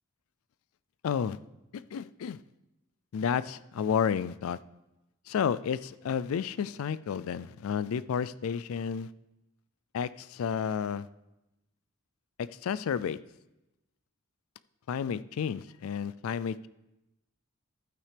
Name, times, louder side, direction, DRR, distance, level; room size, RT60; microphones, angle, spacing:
voice 1, 1.0-1.4 1.7-2.4 3.1-4.6 5.3-9.1 9.9-11.1 12.4-13.2 14.9-16.7, left 7 dB, 85° left, 16 dB, 0.3 m, -31 dB
12.5 x 8.8 x 3.4 m, 0.95 s
head